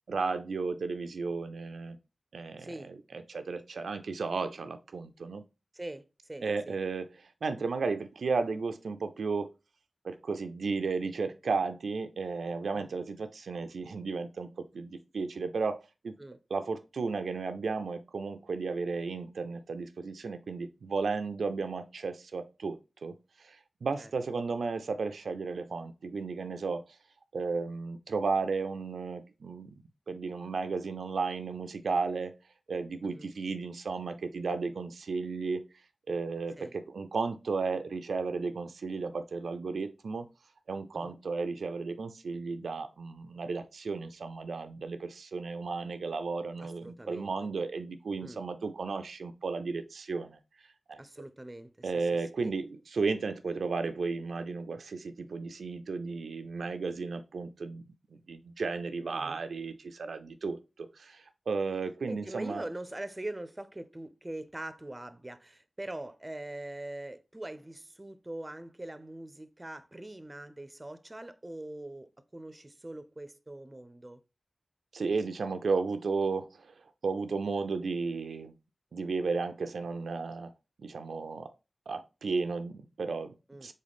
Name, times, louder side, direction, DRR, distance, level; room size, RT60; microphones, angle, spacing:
voice 1, 0.1-2.0 2.3-3.0 3.3-5.4 6.4-9.5 10.0-15.8 16.0-16.1 16.5-26.8 27.3-29.7 30.1-32.3 32.7-35.6 36.1-40.3 40.7-50.4 50.9-51.0 51.8-62.6 74.9-78.5 78.9-80.5 80.8-81.5 81.9-83.3 83.6-83.7, right 4 dB, 85° right, 0.4 m, -34 dB
voice 2, 2.6-2.9 5.7-6.8 12.7-12.9 16.2-16.4 24.0-24.1 33.0-33.3 36.6-36.7 40.9-41.2 46.6-47.3 48.2-48.4 51.0-52.3 59.1-59.4 62.1-74.2 83.5-83.7, right 1 dB, 25° right, 0.5 m, -43 dB
3.9 x 3.7 x 3.4 m
cardioid pair, 45°, 0 cm